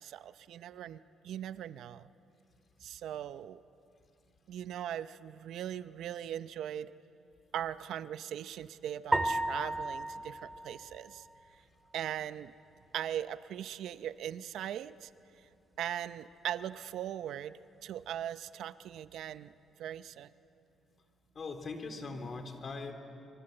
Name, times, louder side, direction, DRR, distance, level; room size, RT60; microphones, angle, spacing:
voice 1, 0.0-2.1 2.8-3.6 4.5-6.9 7.5-11.2 11.9-12.5 12.9-15.1 15.8-19.5 19.8-20.3, right 10 dB, 80° right, 14 dB, 0.7 m, -39 dB
sound 1, 9.1-11.6, right 1 dB, 10° right, 2.2 m, -34 dB
voice 2, 21.3-22.9, left 3 dB, 45° left, 6 dB, 3.4 m, -40 dB
26.0 x 23.0 x 7.8 m, 2.6 s
cardioid pair, 90°, 0 cm